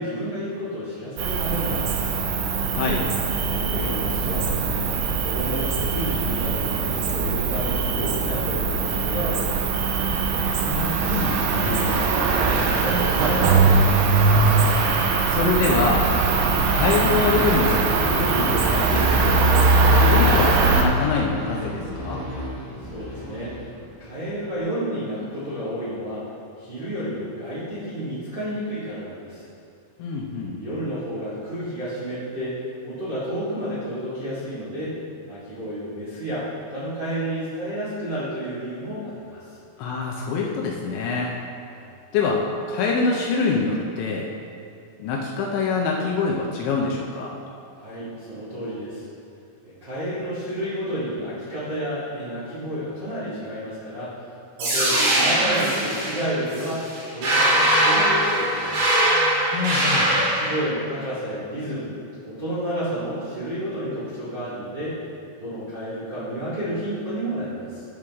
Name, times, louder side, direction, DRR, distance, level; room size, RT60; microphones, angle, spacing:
voice 1, 0.0-2.1 3.4-4.9 5.2-10.0 11.7-14.6 22.9-23.5 24.0-26.2 26.6-29.4 30.6-34.9 35.3-39.6 41.7-41.9 47.8-49.0 49.8-54.1 54.6-56.8 57.1-59.0 60.2-61.9 62.2-65.0 65.4-67.8, equal, 45° right, -11 dB, 1.4 m, -31 dB
Cricket, 1.2-20.8, right 4 dB, 85° right, 3.3 m, -21 dB
voice 2, 2.7-3.0 10.6-12.0 15.3-16.1 16.7-17.8 18.2-19.6 19.9-22.2 30.0-30.8 39.8-41.3 42.1-42.4 42.7-44.3 45.0-47.3 59.5-60.2, left 4 dB, 80° left, -2 dB, 2.8 m, -25 dB
sound 1, 16.7-24.2, left 1 dB, 40° left, 2.5 m, -34 dB
sound 2, 54.6-60.6, right 1 dB, 70° right, 4.7 m, -21 dB
13.0 x 6.3 x 3.6 m, 2.5 s
omnidirectional pair, 5.7 m